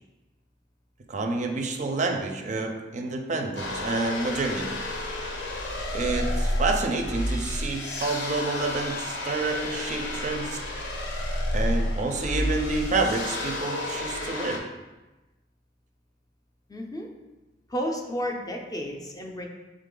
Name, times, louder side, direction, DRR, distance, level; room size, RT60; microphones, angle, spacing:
voice 1, 1.1-4.8 5.9-10.6 11.5-14.6, right 3 dB, 40° right, 4 dB, 0.4 m, -28 dB
sound 1, 3.6-14.6, left 1 dB, 70° left, 0.7 m, -30 dB
voice 2, 16.7-17.1 17.7-19.5, equal, 20° left, 2 dB, 0.5 m, -32 dB
3.7 x 3.7 x 3.8 m, 1.1 s
head